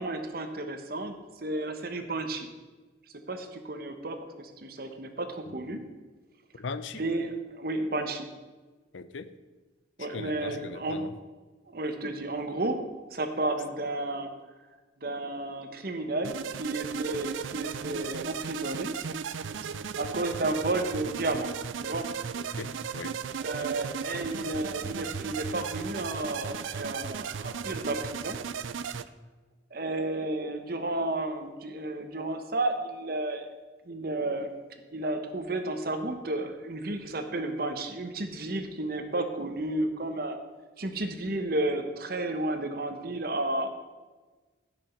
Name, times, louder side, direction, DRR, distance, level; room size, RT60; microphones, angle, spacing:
voice 1, 0.0-2.5 3.3-5.8 7.0-8.3 10.0-11.1 11.7-12.8 13.1-14.3 15.0-18.9 20.0-21.5 21.8-22.0 23.4-28.4 29.7-33.5 33.8-34.5 34.9-40.4 40.8-43.7, right 2 dB, 50° right, 7 dB, 1.1 m, -32 dB
voice 2, 6.6-7.0 8.9-9.3 10.0-11.1 22.4-23.2, left 4 dB, 85° left, 12 dB, 0.6 m, -39 dB
sound 1, 16.2-29.0, right 6 dB, 85° right, 0.4 m, -36 dB
15.0 x 6.2 x 4.5 m, 1.3 s
head